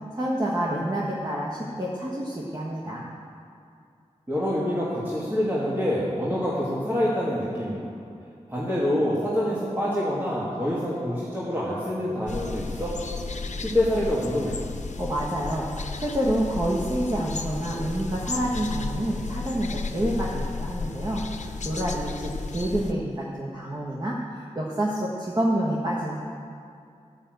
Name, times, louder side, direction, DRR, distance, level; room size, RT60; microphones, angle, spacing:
voice 1, 0.1-3.1 15.0-26.2, right 1 dB, 35° right, -5 dB, 1.4 m, -28 dB
voice 2, 4.3-7.9 8.5-12.9 13.6-14.6, left 1 dB, 15° right, -8 dB, 2.2 m, -26 dB
sound 1, 12.3-22.9, left 4 dB, 80° left, 0.7 m, -33 dB
13.0 x 6.4 x 7.8 m, 2.4 s
wide cardioid pair, 65°, 12 cm